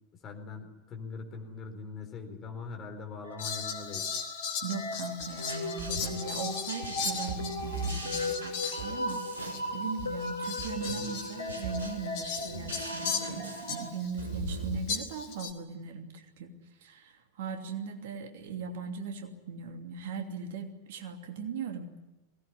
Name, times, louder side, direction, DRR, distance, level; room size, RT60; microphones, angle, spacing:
voice 1, 0.2-4.1, left 4 dB, 30° left, 5 dB, 4.2 m, -42 dB
sound 1, 3.2-13.9, left 2 dB, 70° left, 4.2 m, -38 dB
Fowl, 3.4-9.2 9.5-9.6 10.2-14.1 14.9-15.5, left 6 dB, 45° left, 3.9 m, -37 dB
voice 2, 4.6-13.3 13.7-16.5 16.8-22.0, right 5 dB, 55° right, 4 dB, 2.8 m, -39 dB
sound 2, 5.2-14.8, right 3 dB, 70° right, 4.7 m, -40 dB
22.5 x 18.5 x 9.9 m, 1.1 s
figure-of-eight pair, 90°, 0 cm